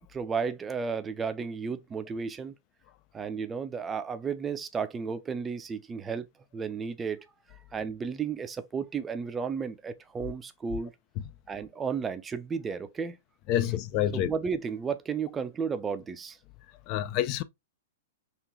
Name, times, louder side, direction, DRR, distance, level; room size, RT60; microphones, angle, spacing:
voice 1, 0.1-2.5 3.1-6.3 6.5-10.9 11.5-13.2 14.1-16.4, right 6 dB, 15° right, 0.5 m, -33 dB
voice 2, 13.5-14.3 16.9-17.4, left 11 dB, 40° left, 0.4 m, -27 dB
3.6 x 2.5 x 3.0 m
hypercardioid pair, 115°, 0 cm